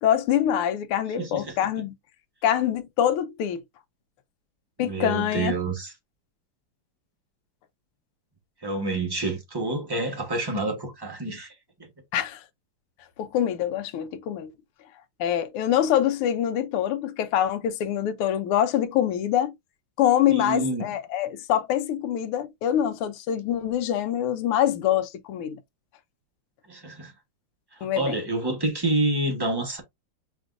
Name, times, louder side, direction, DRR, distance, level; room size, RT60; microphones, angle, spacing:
voice 1, 0.0-1.9 2.4-3.6 4.8-5.5 12.1-12.4 13.2-14.5 15.2-19.5 20.0-25.6 27.8-28.2, left 10 dB, 90° left, 1.5 m, -25 dB
voice 2, 1.2-1.6 4.8-5.9 8.6-11.5 20.3-20.9 26.7-27.1 27.8-29.8, right 2 dB, 25° right, 0.5 m, -28 dB
5.2 x 3.3 x 2.5 m
omnidirectional pair, 2.4 m